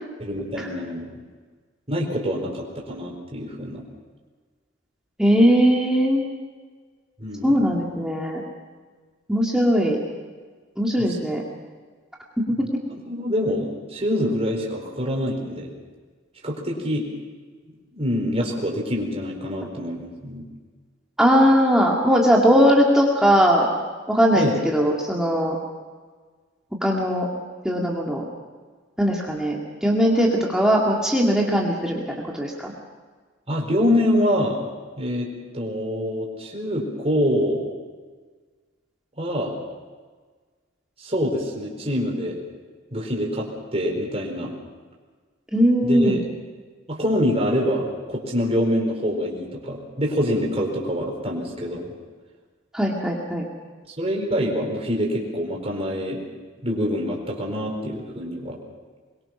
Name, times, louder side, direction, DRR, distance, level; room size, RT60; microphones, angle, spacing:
voice 1, 0.2-1.1 1.9-3.8 7.2-7.6 11.1-11.2 13.0-15.7 16.4-17.1 17.9-20.4 24.4-24.6 33.5-34.6 35.0-35.3 35.5-37.7 39.2-39.5 41.0-42.4 42.9-44.5 45.8-46.2 46.9-51.9 53.9-56.2 56.6-58.6, equal, 30° right, -1 dB, 4.5 m, -25 dB
voice 2, 5.2-6.2 7.4-8.4 9.3-10.0 10.8-11.4 21.2-23.7 24.1-25.6 26.8-27.3 27.6-28.2 29.0-32.7 45.5-46.2 52.7-53.4, equal, 5° right, -3 dB, 2.2 m, -19 dB
23.5 x 22.5 x 6.0 m, 1.5 s
head